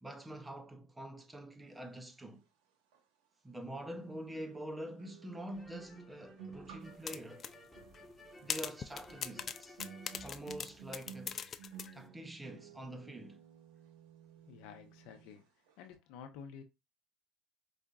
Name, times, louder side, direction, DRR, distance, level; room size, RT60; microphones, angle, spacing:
voice 1, 0.0-2.4 3.4-7.5 8.4-9.8 10.2-11.4 11.9-13.4, right 1 dB, 10° right, 0.6 m, -46 dB
sound 1, 2.9-3.0 4.3-15.4 15.7-15.9, right 7 dB, 85° right, 0.9 m, -55 dB
sound 2, 5.5-11.3, left 1 dB, 5° left, 1.1 m, -57 dB
sound 3, 7.1-7.5 7.9-8.0 8.5-11.9, left 7 dB, 40° left, 0.3 m, -40 dB
voice 2, 14.5-15.4 15.8-16.6, left 7 dB, 75° left, 0.7 m, -50 dB
4.9 x 2.5 x 2.3 m
supercardioid pair, 105°, 0 cm